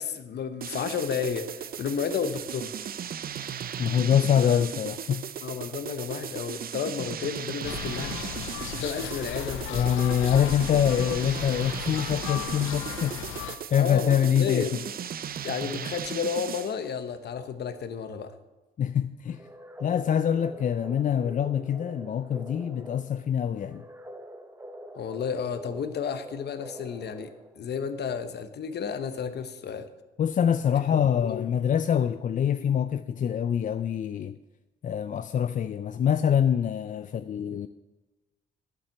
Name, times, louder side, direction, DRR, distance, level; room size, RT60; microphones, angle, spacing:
voice 1, 0.0-2.7 4.4-4.6 5.4-8.2 8.7-9.7 13.8-14.8 15.4-18.3 24.9-29.9 30.8-31.5, left 7 dB, 55° left, 1.0 m, -32 dB
sound 1, 0.6-16.8, right 8 dB, 50° right, 0.5 m, -36 dB
voice 2, 3.8-5.3 9.7-13.2 13.7-14.7 18.8-19.4 19.8-23.8 30.2-34.3 34.8-37.7, left 9 dB, 40° left, 0.4 m, -25 dB
sound 2, 7.6-13.6, left 10 dB, 90° left, 0.8 m, -36 dB
sound 3, 19.3-27.7, right 1 dB, 10° right, 1.1 m, -45 dB
8.9 x 7.5 x 7.8 m
cardioid pair, 90°, 20 cm